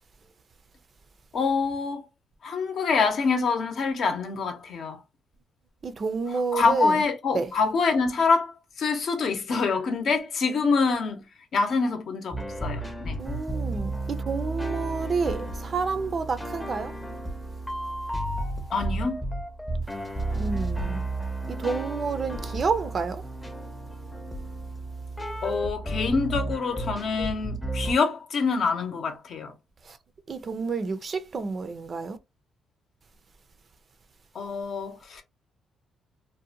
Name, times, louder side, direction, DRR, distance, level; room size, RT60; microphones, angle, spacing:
voice 1, 1.3-2.1 2.4-5.0 6.5-11.2 11.5-13.2 18.7-19.2 25.4-29.5 34.3-35.2, left 4 dB, 60° left, 0.7 m, -26 dB
voice 2, 5.8-7.0 7.3-7.5 13.2-17.0 20.3-21.0 21.5-23.2 29.9-30.0 30.3-32.2, right 4 dB, 45° right, 0.4 m, -29 dB
sound 1, 12.3-27.9, right 2 dB, 10° left, 0.6 m, -32 dB
2.6 x 2.1 x 2.7 m
cardioid pair, 90°, 0 cm